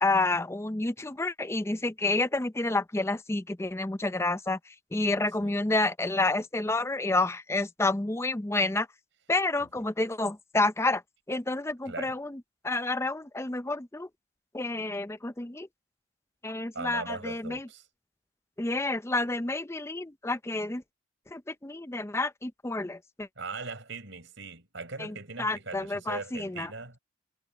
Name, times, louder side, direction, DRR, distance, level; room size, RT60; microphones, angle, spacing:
voice 1, 0.0-4.6 4.9-8.9 9.3-11.0 11.3-12.4 12.6-14.1 14.5-15.7 16.4-17.6 18.6-20.8 21.3-23.3 25.0-25.1 25.4-26.7, left 2 dB, 15° left, 0.5 m, -29 dB
voice 2, 11.8-12.2 16.7-17.9 23.4-27.0, right 3 dB, 65° right, 4.8 m, -40 dB
head